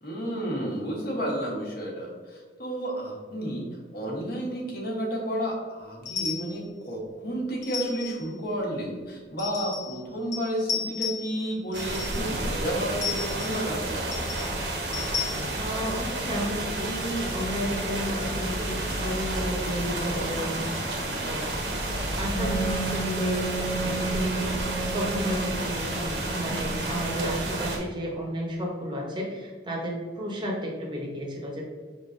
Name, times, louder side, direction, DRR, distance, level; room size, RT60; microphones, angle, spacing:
voice 1, 0.0-14.1, right 1 dB, 55° left, -2 dB, 1.1 m, -31 dB
sound 1, 6.1-6.6 7.6-8.3 9.4-10.0 10.3-11.4 11.7-12.2 13.0-13.6 14.1-14.5 14.9-15.4, left 6 dB, 90° left, 1.1 m, -33 dB
sound 2, 11.7-27.8, right 1 dB, 75° right, 1.0 m, -31 dB
voice 2, 15.6-21.6 22.2-31.6, equal, 25° right, -1 dB, 0.8 m, -32 dB
Wind instrument woodwind instrument, 22.3-27.7, right 5 dB, 30° left, 0.7 m, -34 dB
5.4 x 3.6 x 2.5 m, 1.5 s
head